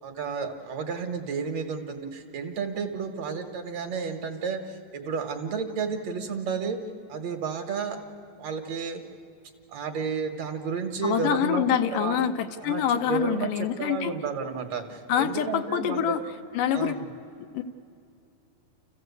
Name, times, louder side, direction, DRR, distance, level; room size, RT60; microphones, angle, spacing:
voice 1, 0.0-6.8 7.1-8.0 8.4-9.0 9.7-11.6 11.9-12.3 12.6-13.5 13.8-16.2 16.7-17.1, right 6 dB, 60° right, 5 dB, 2.0 m, -32 dB
voice 2, 11.0-14.2 15.1-16.2 16.5-17.0 17.5-17.6, left 9 dB, 75° left, 7 dB, 2.4 m, -26 dB
28.5 x 15.0 x 8.2 m, 2.7 s
omnidirectional pair, 4.0 m